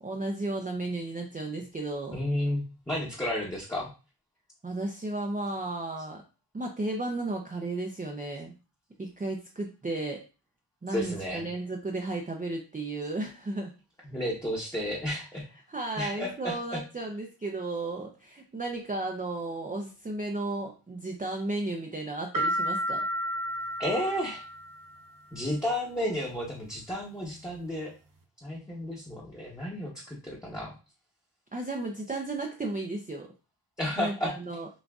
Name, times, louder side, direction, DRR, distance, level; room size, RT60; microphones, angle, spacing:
voice 1, 0.0-2.2 4.6-6.2 6.5-8.5 9.0-10.2 10.8-13.7 15.7-23.1 31.5-33.3 34.0-34.7, right 2 dB, 20° right, 2 dB, 0.5 m, -34 dB
voice 2, 2.1-3.9 10.9-11.4 14.0-15.4 16.0-16.8 23.8-24.4 25.3-27.9 28.4-30.7 33.8-34.3, left 1 dB, 10° left, -5 dB, 0.9 m, -32 dB
sound 1, 22.3-25.0, equal, 50° right, 0.8 m, -31 dB
5.9 x 2.5 x 2.3 m, 0.33 s
wide cardioid pair, 80°, 42 cm